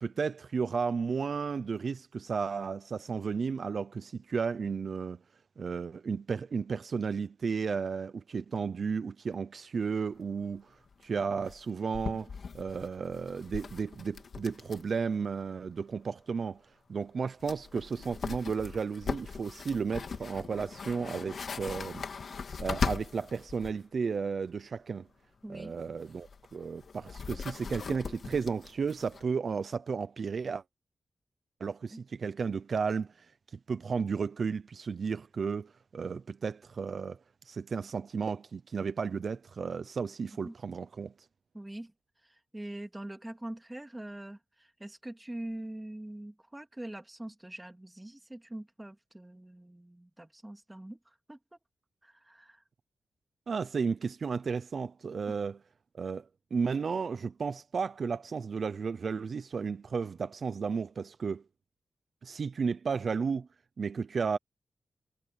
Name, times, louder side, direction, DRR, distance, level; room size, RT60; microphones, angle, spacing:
voice 1, 0.0-5.2 5.6-16.6 16.9-22.0 22.6-25.1 25.5-30.6 31.6-33.3 33.7-37.2 37.4-41.1 53.5-55.6 55.9-61.4 62.2-63.5 63.8-64.4, right 5 dB, 55° right, 0.6 m, -33 dB
sound 1, 10.2-10.3 10.4-10.5 10.9-11.0 11.5-15.0 15.3-15.4 17.0-17.1 17.4-23.8 25.6-29.3, left 5 dB, 60° left, 2.2 m, -39 dB
voice 2, 25.4-25.8 40.4-40.5 41.5-41.9 42.5-51.0 51.3-51.4 52.0-52.6 55.3-55.4, right 1 dB, 10° right, 2.2 m, -43 dB
wide cardioid pair, 135°, 0 cm